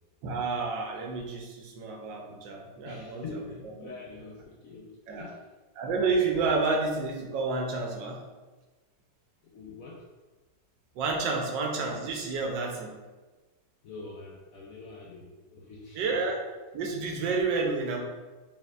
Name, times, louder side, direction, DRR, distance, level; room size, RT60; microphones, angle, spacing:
voice 1, 0.2-3.2 5.1-5.3 5.8-8.2 10.9-13.0 16.0-16.4 16.7-18.0, right 4 dB, 90° right, 1 dB, 1.4 m, -30 dB
voice 2, 2.8-5.5 9.4-10.1 13.8-16.0, left 3 dB, 70° left, -3 dB, 0.8 m, -44 dB
4.4 x 3.5 x 2.3 m, 1.2 s
omnidirectional pair, 1.9 m